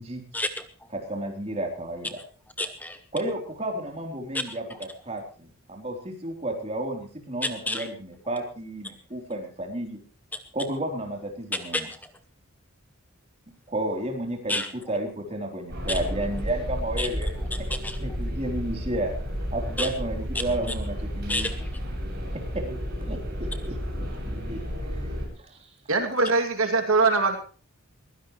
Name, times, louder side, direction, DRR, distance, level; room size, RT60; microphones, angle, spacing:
voice 1, 0.3-0.9 2.6-3.0 4.3-4.6 7.4-7.9 10.3-10.4 11.5-12.1 14.5-14.7 15.9-16.0 17.0-17.1 17.5-18.0 19.8-19.9 20.3-20.4 21.3-21.7, left 2 dB, 10° left, 9 dB, 0.8 m, -30 dB
voice 2, 0.9-2.2 3.1-10.0 10.5-11.9 13.7-14.6 14.9-17.3 18.0-19.1 19.5-21.5 22.3-22.6 23.0-24.9 25.4-25.6, right 1 dB, 30° right, 1 dB, 3.8 m, -32 dB
sound 1, 15.7-25.3, equal, 45° right, 7.6 m, -32 dB
voice 3, 25.9-27.4, right 3 dB, 70° right, 5 dB, 2.7 m, -22 dB
22.0 x 16.0 x 3.2 m, 0.41 s
head